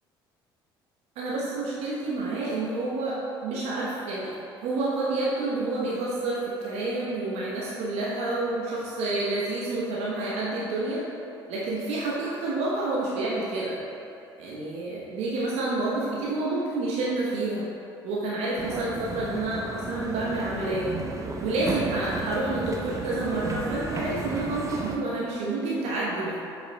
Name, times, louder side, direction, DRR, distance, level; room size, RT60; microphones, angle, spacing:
voice 1, 1.2-4.3 4.6-11.0 11.5-13.8 14.4-17.6 18.0-20.9 21.4-26.4, right 2 dB, 60° right, -6 dB, 1.1 m, -29 dB
sound 1, 18.6-25.0, right 2 dB, 25° right, 0.8 m, -34 dB
7.9 x 6.6 x 2.3 m, 2.7 s
figure-of-eight pair, 55°, 12 cm